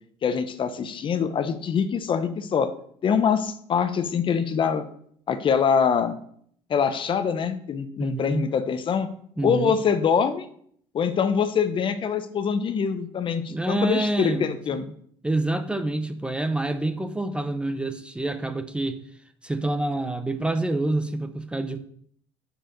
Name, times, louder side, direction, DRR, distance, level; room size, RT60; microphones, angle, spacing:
voice 1, 0.2-2.7 3.0-4.8 5.3-6.2 6.7-9.1 9.4-10.5 10.9-14.9, left 6 dB, 45° left, 0.8 m, -24 dB
voice 2, 8.0-8.5 9.4-9.8 13.5-14.8 15.2-19.0 19.4-21.8, right 2 dB, 10° right, 0.6 m, -27 dB
6.4 x 4.7 x 6.6 m
cardioid pair, 100°, 12 cm